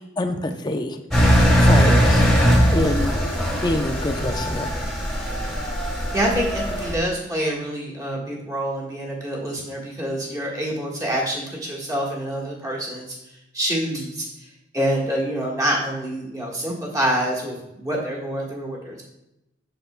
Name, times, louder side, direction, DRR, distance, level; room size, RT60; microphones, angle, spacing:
voice 1, 0.2-1.0 1.6-2.3 2.7-3.1 3.6-4.7, left 1 dB, 25° left, 6 dB, 0.6 m, -25 dB
Engine, 1.1-6.9, equal, ahead, 1.3 m, -19 dB
voice 2, 6.1-13.2 13.5-14.3 14.7-19.0, equal, 20° right, -3 dB, 1.5 m, -26 dB
7.9 x 6.7 x 2.2 m, 0.88 s
head